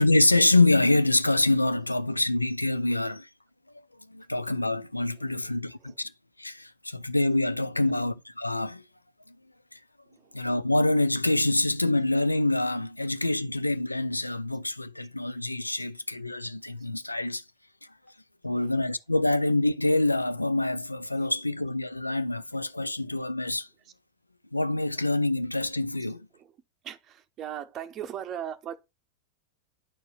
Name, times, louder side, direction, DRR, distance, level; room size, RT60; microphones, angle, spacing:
voice 1, 0.0-3.3 4.1-6.1 6.4-8.8 10.3-17.4 18.4-23.7 24.5-26.3, left 2 dB, 85° left, 0.4 m, -26 dB
voice 2, 26.8-28.8, right 10 dB, 30° right, 0.7 m, -38 dB
8.8 x 4.5 x 3.2 m
figure-of-eight pair, 90°, 0 cm